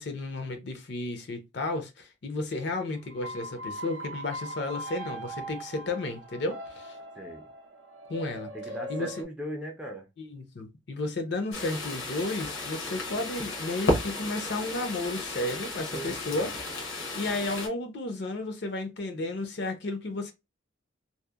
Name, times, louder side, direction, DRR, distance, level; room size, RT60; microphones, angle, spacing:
voice 1, 0.0-7.0 8.1-8.5 8.9-9.1 10.2-16.5 17.1-20.3, left 2 dB, 55° left, 0.5 m, -33 dB
sound 1, 3.0-9.2, right 1 dB, 70° right, 0.4 m, -40 dB
voice 2, 7.2-7.5 8.5-10.1 15.9-16.5, equal, 5° right, 0.4 m, -39 dB
sound 2, 11.5-17.7, left 2 dB, 80° left, 0.9 m, -33 dB
2.7 x 2.0 x 2.2 m
head